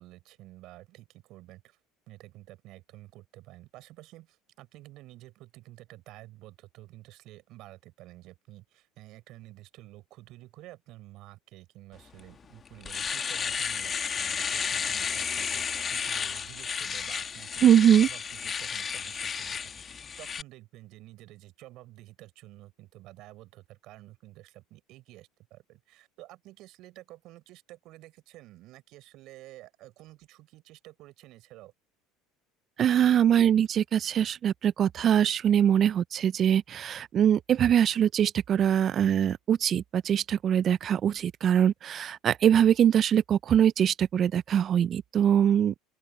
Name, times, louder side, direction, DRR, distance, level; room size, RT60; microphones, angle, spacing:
voice 1, 0.0-1.8 2.1-17.6 18.0-31.7, right 17 dB, 60° right, 5.3 m, -50 dB
Domestic sounds home sounds, 12.2-12.3 12.7-20.4, left 6 dB, 35° left, 2.0 m, -32 dB
voice 2, 17.6-18.1 32.8-45.7, right 9 dB, 45° right, 0.8 m, -23 dB
open air
hypercardioid pair, 75°, 0 cm